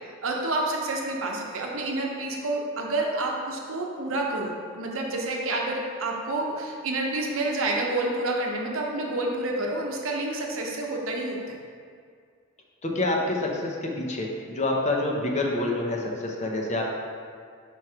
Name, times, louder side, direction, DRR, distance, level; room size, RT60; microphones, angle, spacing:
voice 1, 0.2-11.4, right 2 dB, 75° right, 0 dB, 0.8 m, -29 dB
voice 2, 12.8-16.8, left 2 dB, 35° left, 0 dB, 0.7 m, -27 dB
4.6 x 4.4 x 4.8 m, 2.1 s
head